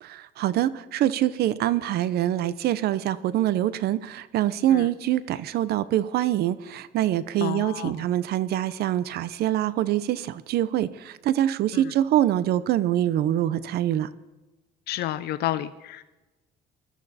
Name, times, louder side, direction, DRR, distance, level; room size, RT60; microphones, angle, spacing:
voice 1, 0.0-14.1, right 12 dB, 70° right, 17 dB, 0.8 m, -25 dB
voice 2, 7.4-8.1 11.7-11.9 14.9-16.0, left 13 dB, 70° left, 13 dB, 0.6 m, -30 dB
21.0 x 13.5 x 4.2 m, 1.1 s
cardioid pair, 110°, 17 cm